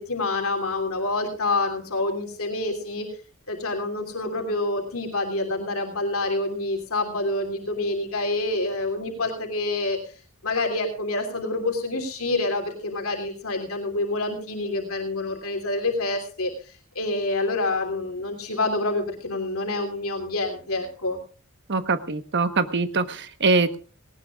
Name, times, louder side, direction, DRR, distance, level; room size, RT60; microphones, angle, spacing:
voice 1, 0.0-3.1 3.5-10.1 10.4-21.2, left 2 dB, 80° left, 2 dB, 3.1 m, -27 dB
voice 2, 21.7-23.8, right 3 dB, 55° right, 10 dB, 1.2 m, -23 dB
18.5 x 18.0 x 2.4 m, 0.37 s
head